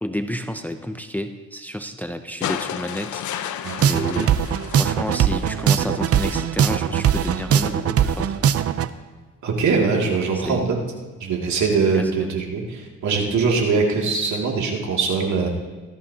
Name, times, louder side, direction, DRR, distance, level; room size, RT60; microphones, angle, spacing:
voice 1, 0.0-8.3 10.4-10.7 11.9-12.3, equal, 5° left, 7 dB, 0.6 m, -31 dB
sound 1, 2.4-5.7 7.0-7.1, left 10 dB, 75° left, 0.7 m, -32 dB
sound 2, 3.6-8.9, right 8 dB, 50° right, 0.6 m, -20 dB
voice 2, 9.4-10.8 11.2-15.5, right 4 dB, 70° right, -1 dB, 2.6 m, -22 dB
19.0 x 13.5 x 2.9 m, 1.3 s
cardioid pair, 90°, 30 cm